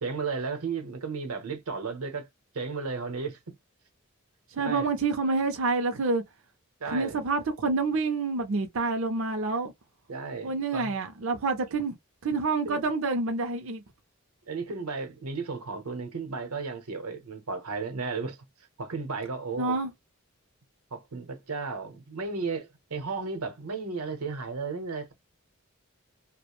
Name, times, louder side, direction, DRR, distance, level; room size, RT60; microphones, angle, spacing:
voice 1, 0.0-2.3 2.5-3.4 4.6-4.9 6.8-7.2 10.1-10.9 12.6-12.8 14.5-18.4 18.8-19.8 20.9-25.1, right 4 dB, 90° right, 0.8 m, -34 dB
voice 2, 4.5-6.2 6.9-9.7 10.4-11.9 12.2-13.8 19.6-19.9, right 3 dB, 60° right, 0.5 m, -28 dB
2.4 x 2.0 x 2.9 m
head